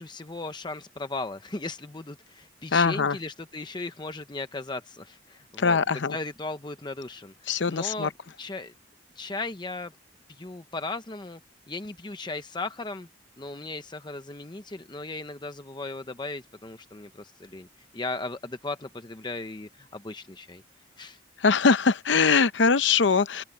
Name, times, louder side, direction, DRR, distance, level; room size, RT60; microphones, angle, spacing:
voice 1, 0.0-8.1 8.4-8.7 9.2-9.9 10.3-11.4 11.7-13.1 13.4-17.7 17.9-20.6 21.0-21.2, left 3 dB, 25° left, 0.8 m, -37 dB
voice 2, 2.7-3.2 5.6-6.1 7.5-8.1 21.4-23.4, left 5 dB, 70° left, 0.7 m, -22 dB
open air
head